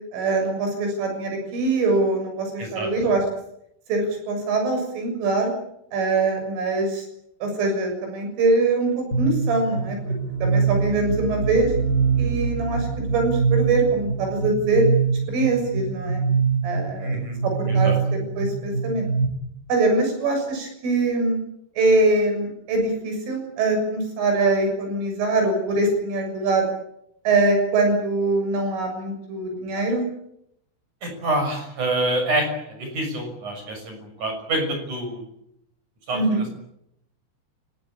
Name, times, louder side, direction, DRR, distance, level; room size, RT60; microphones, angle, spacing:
voice 1, 0.1-3.2 3.9-5.5 5.9-7.1 7.4-10.1 10.4-11.7 12.2-14.9 15.3-16.2 16.6-17.2 17.4-19.1 19.7-21.4 21.8-26.7 27.3-30.1 36.1-36.4, right 3 dB, 85° right, 4 dB, 9.5 m, -23 dB
voice 2, 2.6-2.9 17.0-17.4 17.7-18.0 31.0-35.2 36.1-36.5, right 1 dB, 40° right, 4 dB, 7.7 m, -27 dB
sound 1, 9.1-19.2, right 5 dB, 20° left, 6.2 m, -24 dB
30.0 x 19.0 x 8.8 m, 0.78 s
omnidirectional pair, 5.5 m